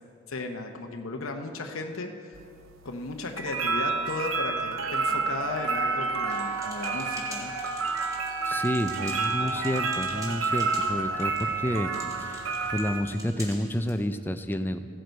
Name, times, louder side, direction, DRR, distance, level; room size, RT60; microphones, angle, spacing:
voice 1, 0.3-2.4 2.8-7.5, left 3 dB, 85° left, 4 dB, 0.8 m, -35 dB
sound 1, 2.3-13.0, right 4 dB, 75° right, 0.7 m, -30 dB
Wind instrument woodwind instrument, 5.5-9.7, right 2 dB, 55° right, 3.5 m, -40 dB
sound 2, 6.3-14.0, equal, 15° right, 1.9 m, -45 dB
voice 2, 8.4-11.9 12.2-14.8, left 1 dB, 10° left, 9 dB, 0.4 m, -30 dB
16.0 x 7.8 x 4.5 m, 2.3 s
head